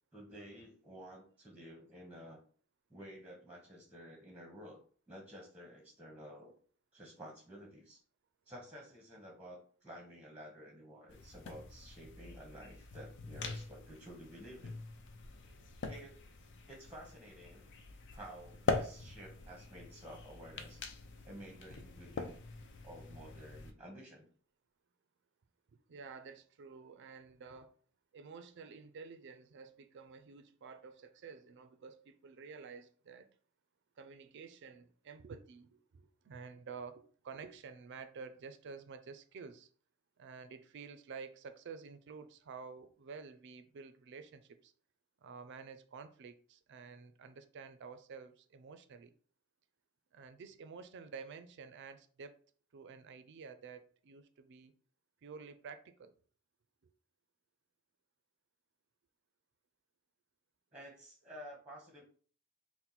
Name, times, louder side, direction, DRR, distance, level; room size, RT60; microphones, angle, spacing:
voice 1, 0.1-2.4 2.9-6.5 6.9-8.0 8.5-14.7 15.9-16.2 16.7-17.7 18.1-20.8 21.2-22.4 22.8-24.3 60.7-62.0, equal, 5° right, 0.8 m, -52 dB
sound 1, 11.1-23.7, left 3 dB, 60° left, 0.5 m, -43 dB
voice 2, 25.9-27.7 28.1-33.3 34.0-39.7 40.2-44.7 45.2-49.1 50.1-52.4 52.7-54.7 55.2-56.1, right 5 dB, 55° right, 0.4 m, -50 dB
4.3 x 2.1 x 3.9 m
head